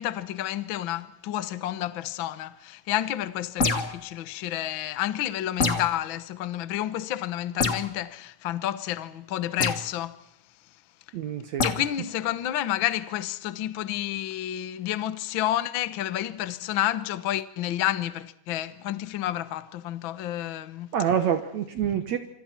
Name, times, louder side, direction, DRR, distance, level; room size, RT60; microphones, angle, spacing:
voice 1, 0.0-10.2 11.6-20.9 21.8-22.0, left 13 dB, 75° left, 1.1 m, -30 dB
sound 1, 3.6-4.0 5.6-6.0 7.6-7.9 9.6-9.8 11.6-11.8, left 3 dB, 40° left, 1.1 m, -25 dB
voice 2, 11.1-11.7 20.9-22.2, right 8 dB, 65° right, 2.2 m, -26 dB
27.0 x 26.0 x 4.5 m
omnidirectional pair, 3.8 m